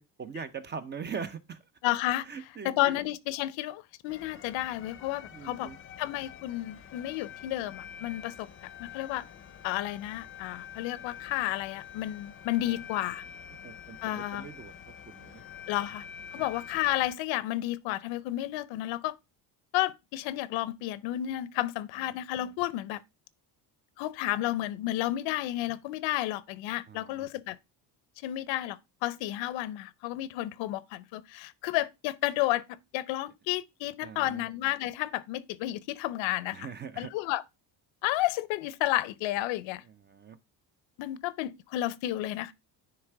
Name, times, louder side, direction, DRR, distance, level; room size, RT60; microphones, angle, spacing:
voice 1, 0.0-1.6 2.2-3.0 5.3-5.8 12.6-12.8 13.6-15.4 16.3-16.5 26.9-27.3 34.0-34.4 36.5-37.1 39.9-40.4, right 6 dB, 25° right, 0.5 m, -42 dB
voice 2, 1.8-2.3 2.6-5.7 6.0-8.5 8.8-9.3 9.6-13.2 14.0-14.5 15.7-16.1 16.3-19.2 19.7-23.0 24.0-27.6 28.2-36.7 37.0-37.4 38.0-39.8 41.0-42.5, left 15 dB, 75° left, 0.7 m, -31 dB
sound 1, 4.1-17.1, left 8 dB, 30° left, 0.6 m, -47 dB
9.9 x 3.4 x 4.5 m
cardioid pair, 140°, 45 cm